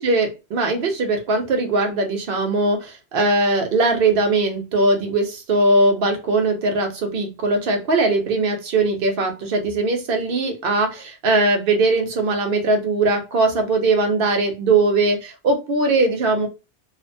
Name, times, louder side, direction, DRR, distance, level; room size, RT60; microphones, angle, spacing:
voice 1, 0.0-16.5, right 2 dB, 65° right, 4 dB, 0.8 m, -20 dB
2.4 x 2.1 x 2.6 m, 0.27 s
omnidirectional pair, 1.1 m